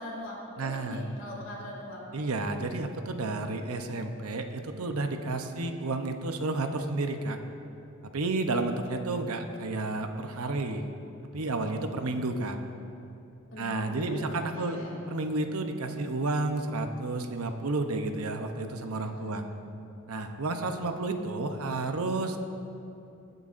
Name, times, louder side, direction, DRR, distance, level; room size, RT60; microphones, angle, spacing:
voice 1, 0.0-2.1 13.5-15.0 19.0-19.4, left 1 dB, 60° left, -4 dB, 2.8 m, -41 dB
voice 2, 0.6-1.0 2.1-7.4 8.1-10.8 11.3-12.6 13.6-14.8 15.1-19.4 20.1-22.4, right 2 dB, 85° right, 6 dB, 0.8 m, -31 dB
21.0 x 7.9 x 2.6 m, 2.8 s
head